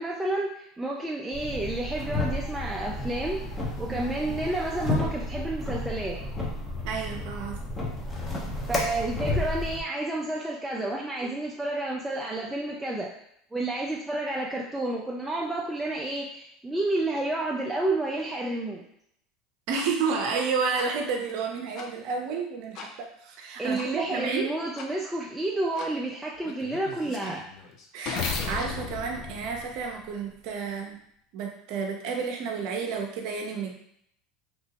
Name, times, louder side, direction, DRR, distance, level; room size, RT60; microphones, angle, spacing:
voice 1, 0.0-6.2 8.7-13.1 13.5-18.8 23.6-27.4, right 2 dB, 10° right, -3 dB, 0.4 m, -30 dB
sound 1, 1.3-9.8, left 1 dB, 15° left, 0.8 m, -32 dB
voice 2, 6.8-7.6 19.7-24.5 27.9-31.0 31.3-33.7, right 5 dB, 65° right, 2 dB, 0.6 m, -31 dB
sound 2, 19.8-19.9 20.8-20.9 21.8-21.9 22.8-22.9 23.8-23.9 24.8-24.9 25.8-25.9 26.4-30.3, left 5 dB, 55° left, 0.5 m, -36 dB
3.0 x 2.7 x 2.9 m, 0.71 s
hypercardioid pair, 95°, 0 cm